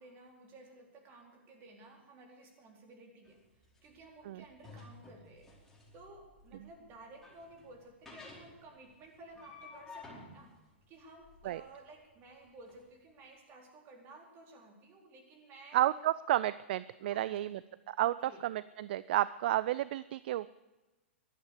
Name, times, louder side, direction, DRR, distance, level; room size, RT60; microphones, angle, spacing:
voice 1, 0.0-10.5 10.9-15.8 17.1-17.6 18.0-18.5, right 2 dB, 35° right, 2 dB, 4.2 m, -55 dB
sound 1, 3.2-12.8, left 3 dB, 5° left, 4.8 m, -54 dB
voice 2, 15.7-17.6 17.9-18.1 18.4-20.5, right 13 dB, 55° right, 18 dB, 0.4 m, -31 dB
15.5 x 12.0 x 6.7 m, 1.1 s
figure-of-eight pair, 110°, 7 cm